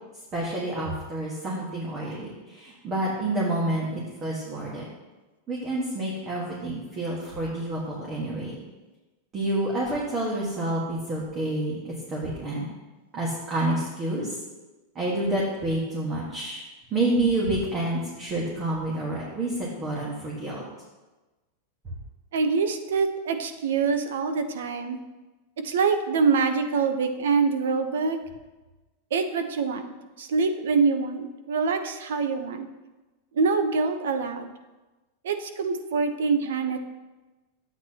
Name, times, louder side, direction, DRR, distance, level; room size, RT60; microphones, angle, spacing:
voice 1, 0.3-4.9 5.5-8.5 9.3-12.7 13.1-14.4 14.9-16.6 16.9-20.6, right 1 dB, 20° right, -5 dB, 1.6 m, -28 dB
voice 2, 22.3-25.0 25.6-28.2 29.1-32.7 33.3-34.5 35.2-36.8, right 5 dB, 90° right, 8 dB, 0.9 m, -25 dB
12.0 x 8.3 x 2.9 m, 1.2 s
supercardioid pair, 170°, 0 cm